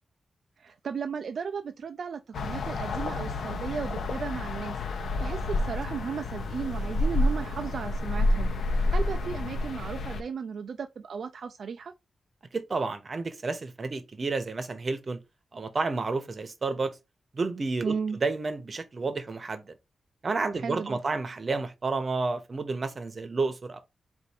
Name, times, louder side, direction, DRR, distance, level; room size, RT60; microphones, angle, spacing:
voice 1, 0.6-4.8 5.2-11.9 17.8-18.2 20.5-21.0, right 6 dB, 70° right, 0.3 m, -35 dB
sound 1, 2.3-10.2, left 2 dB, 90° left, 0.7 m, -29 dB
voice 2, 12.5-15.2 15.5-17.0 17.3-19.7 20.2-23.8, right 3 dB, 45° right, 0.8 m, -30 dB
4.1 x 2.5 x 4.8 m
wide cardioid pair, 100°, 0 cm